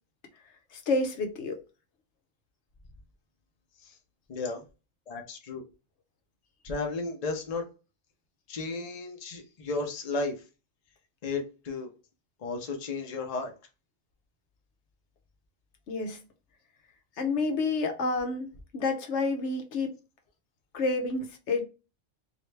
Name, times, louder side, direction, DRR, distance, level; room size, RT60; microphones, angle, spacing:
voice 1, 0.7-1.6 15.9-16.2 17.2-18.5 18.7-20.0 20.7-21.7, left 3 dB, 75° left, 1.0 m, -29 dB
voice 2, 4.3-4.6 5.1-5.6 6.6-7.6 8.5-10.3 11.2-11.9 12.4-13.5, left 3 dB, 40° left, 0.7 m, -33 dB
3.2 x 2.7 x 3.2 m
omnidirectional pair, 1.2 m